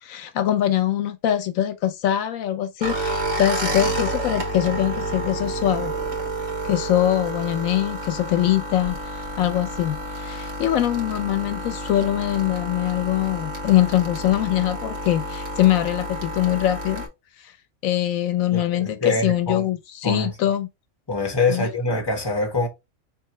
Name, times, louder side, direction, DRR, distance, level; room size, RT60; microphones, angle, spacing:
voice 1, 0.0-5.9 6.6-17.0 17.4-17.5 17.8-20.7 21.5-21.7, left 12 dB, 80° left, 1.0 m, -23 dB
sound 1, 2.8-17.1, right 1 dB, 70° right, 1.4 m, -30 dB
voice 2, 18.5-19.6 20.0-20.3 21.1-22.7, left 3 dB, 20° left, 1.1 m, -24 dB
4.7 x 3.1 x 3.1 m
omnidirectional pair, 1.4 m